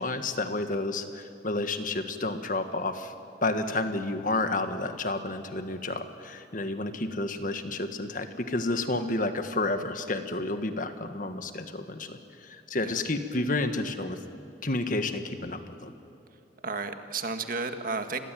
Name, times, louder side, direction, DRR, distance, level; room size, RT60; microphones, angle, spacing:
voice 1, 0.0-3.1 3.4-14.2 14.6-15.9, left 2 dB, 45° left, 8 dB, 1.7 m, -30 dB
voice 2, 16.6-18.2, right 4 dB, 50° right, 7 dB, 1.8 m, -33 dB
29.0 x 22.0 x 9.3 m, 2.6 s
head